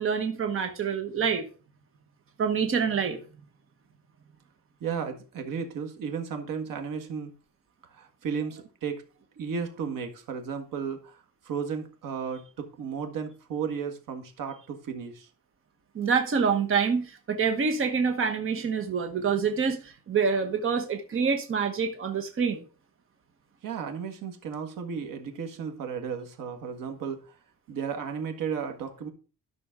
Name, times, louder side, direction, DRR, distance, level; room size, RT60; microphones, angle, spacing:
voice 1, 0.0-1.5 2.4-3.2 15.9-22.6, right 6 dB, 40° right, 1.1 m, -26 dB
voice 2, 4.8-7.3 7.8-9.0 9.4-15.3 23.6-27.3 27.7-29.1, right 6 dB, 80° right, 1.7 m, -34 dB
12.0 x 6.1 x 3.7 m
cardioid pair, 150°, 33 cm